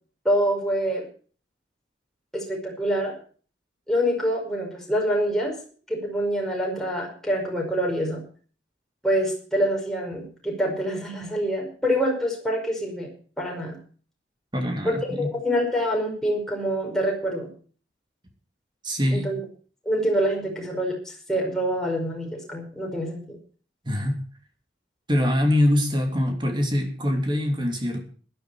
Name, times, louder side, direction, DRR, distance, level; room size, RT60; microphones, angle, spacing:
voice 1, 0.3-1.1 2.3-3.1 3.9-5.6 5.9-8.2 9.0-13.1 13.4-13.8 14.8-17.5 19.1-19.4 19.9-23.4, equal, 5° left, -1 dB, 5.2 m, -26 dB
voice 2, 14.5-15.3 18.8-19.3 23.8-24.2 25.1-28.0, left 1 dB, 25° right, 4 dB, 2.9 m, -24 dB
16.0 x 12.0 x 4.7 m, 0.41 s
head